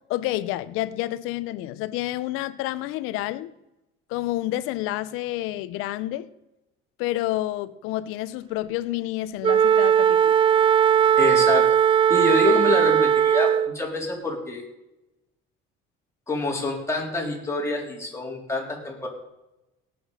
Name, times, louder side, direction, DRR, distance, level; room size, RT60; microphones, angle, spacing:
voice 1, 0.1-3.5 4.1-6.3 7.0-10.4, left 15 dB, 85° left, 0.8 m, -29 dB
Wind instrument woodwind instrument, 9.4-13.8, right 9 dB, 25° right, 0.3 m, -18 dB
voice 2, 11.2-11.7 12.1-14.6 16.3-19.1, left 2 dB, 15° left, 3.8 m, -26 dB
18.0 x 7.1 x 5.6 m
cardioid pair, 110°, 21 cm